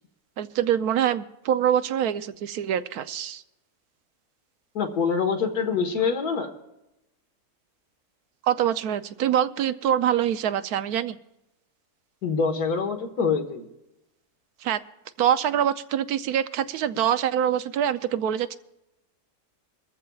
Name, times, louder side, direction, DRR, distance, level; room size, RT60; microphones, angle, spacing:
voice 1, 0.4-3.4 8.4-11.2 14.6-14.8 15.2-18.6, right 10 dB, 80° right, 12 dB, 1.1 m, -24 dB
voice 2, 4.8-6.5 12.2-13.6, left 5 dB, 85° left, 4 dB, 2.0 m, -25 dB
22.5 x 14.0 x 2.3 m, 0.91 s
omnidirectional pair, 1.6 m